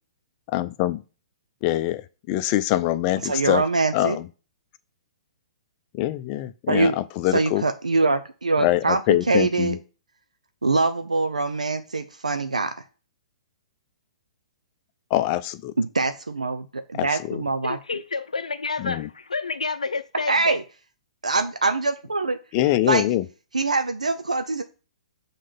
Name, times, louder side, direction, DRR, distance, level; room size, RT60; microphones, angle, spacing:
voice 1, 0.5-1.0 1.6-2.0 2.3-3.6 3.9-4.3 5.9-7.6 8.6-9.8 15.1-15.7 16.9-17.4 18.8-19.1 22.5-23.2, left 14 dB, 35° left, 0.6 m, -24 dB
voice 2, 3.2-4.2 6.7-6.9 7.3-9.0 9.3-9.8 10.6-12.7 15.8-17.8 20.3-20.6 21.2-22.4 22.9-23.0 23.5-24.6, right 3 dB, 90° right, 0.6 m, -23 dB
voice 3, 17.6-20.6, left 4 dB, 85° left, 0.6 m, -29 dB
6.4 x 3.3 x 5.8 m
figure-of-eight pair, 120°, 4 cm